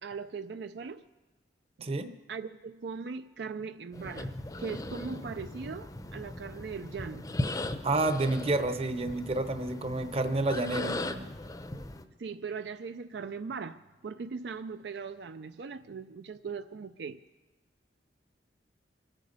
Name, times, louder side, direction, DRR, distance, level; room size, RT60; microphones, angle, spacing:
voice 1, 0.0-1.0 1.8-1.9 2.3-4.3 4.6-7.2 12.2-17.2, right 5 dB, 65° right, 9 dB, 0.4 m, -39 dB
sound 1, 3.9-12.0, left 1 dB, 20° left, 0.6 m, -38 dB
voice 2, 7.8-11.3, right 2 dB, 35° right, 9 dB, 0.8 m, -29 dB
24.0 x 9.0 x 5.4 m, 1.2 s
head